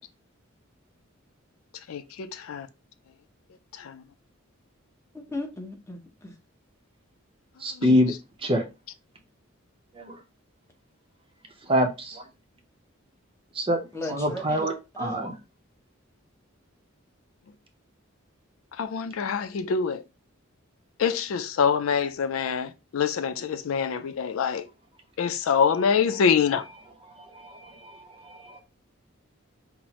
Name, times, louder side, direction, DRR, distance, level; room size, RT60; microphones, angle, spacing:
voice 1, 1.9-2.7 3.7-4.0 7.8-8.0 18.8-20.0 21.0-24.7 25.2-26.7, left 6 dB, 80° left, 0.4 m, -25 dB
voice 2, 5.3-6.3 13.9-14.7 15.0-15.3, left 2 dB, 15° left, 0.8 m, -36 dB
voice 3, 7.6-8.1 8.4-8.6 10.0-10.2 11.7-12.2 13.6-13.8 14.1-15.3 27.3-28.0 28.2-28.6, equal, 25° right, 0.6 m, -25 dB
5.6 x 2.0 x 2.9 m
head